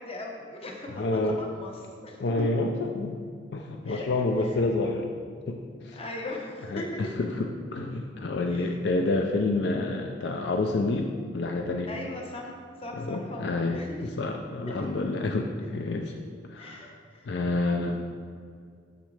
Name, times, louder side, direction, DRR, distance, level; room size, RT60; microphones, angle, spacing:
voice 1, 0.0-1.0 1.4-2.2 3.8-4.1 5.9-7.1 8.5-8.7 11.9-12.5 12.8-14.1 14.6-14.9 16.6-17.3 17.8-17.9, left 1 dB, 35° left, 0 dB, 0.9 m, -39 dB
voice 2, 0.9-1.4 2.2-3.2 3.5-5.1 5.5-5.6 5.8-6.0 6.7-11.9 12.9-16.1 16.4-16.9 17.3-18.0, left 2 dB, 70° left, 3 dB, 0.4 m, -28 dB
6.6 x 6.2 x 3.2 m, 2.2 s
head